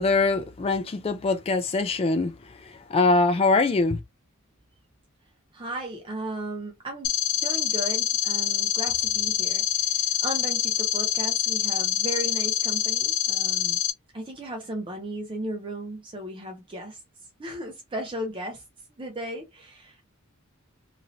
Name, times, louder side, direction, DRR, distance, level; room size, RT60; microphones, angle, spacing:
voice 1, 0.0-2.3 2.6-4.0, left 3 dB, 25° left, 0.3 m, -23 dB
voice 2, 5.5-7.1 7.4-13.8 14.1-17.0 17.4-18.6 18.9-20.0, right 1 dB, 25° right, 0.6 m, -35 dB
sound 1, 7.0-13.9, left 10 dB, 90° left, 0.7 m, -25 dB
3.0 x 2.7 x 2.6 m
head